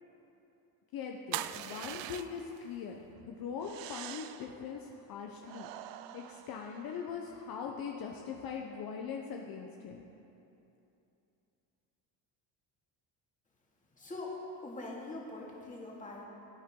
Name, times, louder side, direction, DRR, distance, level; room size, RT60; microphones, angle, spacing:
voice 1, 0.9-5.7 6.1-10.0, left 6 dB, 55° left, 1 dB, 0.9 m, -41 dB
sound 1, 1.3-2.6 3.6-4.5 5.4-7.1, right 13 dB, 90° right, 0.6 m, -43 dB
voice 2, 14.0-16.3, left 2 dB, 20° left, -3 dB, 2.3 m, -43 dB
17.5 x 9.6 x 3.8 m, 2.9 s
cardioid pair, 120°, 42 cm